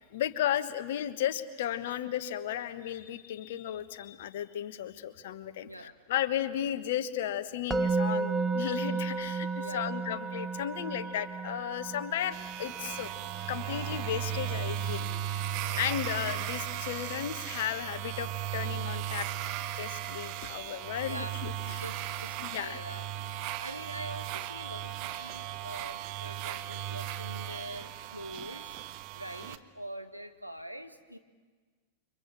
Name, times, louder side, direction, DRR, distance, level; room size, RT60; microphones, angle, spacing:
voice 1, 0.1-13.1 13.5-15.1 15.8-19.3 19.8-21.8 22.4-22.8 25.2-25.3, left 11 dB, 55° left, 12 dB, 1.4 m, -34 dB
Musical instrument, 7.7-18.8, right 4 dB, 10° right, 0.9 m, -35 dB
voice 2, 9.6-9.9 15.7-15.9 21.0-28.7 29.1-31.2, right 1 dB, 90° right, 6 dB, 1.6 m, -44 dB
sound 1, 12.3-29.6, right 10 dB, 40° right, 1.3 m, -36 dB
29.5 x 25.5 x 7.4 m, 1.4 s
figure-of-eight pair, 90°, 0 cm